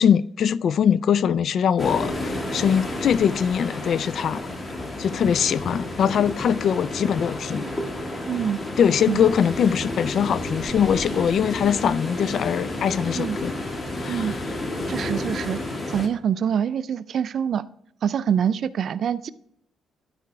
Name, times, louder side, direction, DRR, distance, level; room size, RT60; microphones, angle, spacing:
voice 1, 0.0-4.4 5.0-7.7 8.8-13.5 14.0-14.4, left 8 dB, 65° left, 0.3 m, -22 dB
sound 1, 1.8-16.1, left 1 dB, 25° left, 1.6 m, -31 dB
voice 2, 8.3-8.6 9.1-9.2 13.2-13.4 14.1-14.3 14.9-15.6 15.9-17.7 18.0-19.3, right 8 dB, 60° right, 0.4 m, -25 dB
12.0 x 5.1 x 3.4 m
cardioid pair, 90°, 0 cm